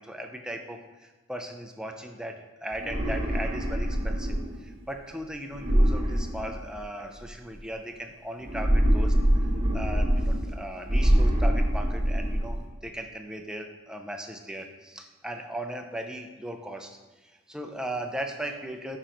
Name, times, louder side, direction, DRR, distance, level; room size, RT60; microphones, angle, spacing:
voice 1, 0.0-9.1 9.7-19.0, right 1 dB, 5° right, 4 dB, 0.5 m, -37 dB
sound 1, 2.7-4.6 5.5-7.0 8.4-10.5 10.8-12.6, equal, 30° right, 1.2 m, -24 dB
8.9 x 5.1 x 3.0 m, 1.2 s
head